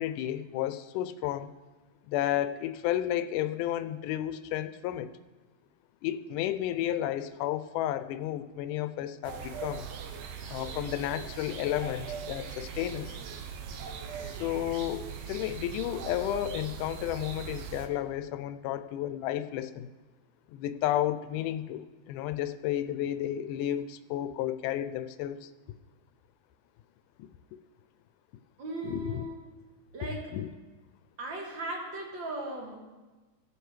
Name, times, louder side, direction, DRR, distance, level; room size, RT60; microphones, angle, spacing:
voice 1, 0.0-1.5 2.1-5.1 6.0-9.9 10.5-13.2 14.2-19.9 20.5-25.5 27.2-27.3 28.8-29.2 30.3-30.5, left 12 dB, 85° left, 11 dB, 2.1 m, -32 dB
sound 1, 9.2-17.9, right 7 dB, 85° right, 2.4 m, -40 dB
voice 2, 28.6-29.4 29.9-30.3 31.2-32.8, right 1 dB, 50° right, 0 dB, 1.7 m, -37 dB
17.0 x 7.9 x 3.2 m, 1.3 s
omnidirectional pair, 3.6 m